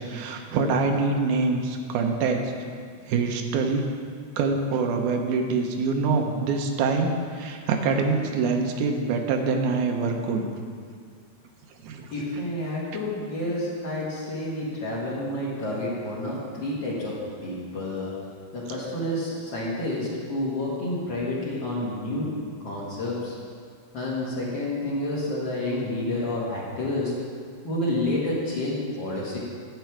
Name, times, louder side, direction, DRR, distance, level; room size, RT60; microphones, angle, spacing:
voice 1, 0.0-2.4 3.0-3.8 4.4-10.5 11.8-12.1, right 4 dB, 90° right, 4 dB, 2.3 m, -25 dB
voice 2, 12.1-17.1 17.4-18.1 18.5-22.3 22.6-23.3 23.9-27.1 27.6-29.4, left 1 dB, 45° left, -6 dB, 2.1 m, -29 dB
10.5 x 7.9 x 4.6 m, 2.1 s
omnidirectional pair, 3.5 m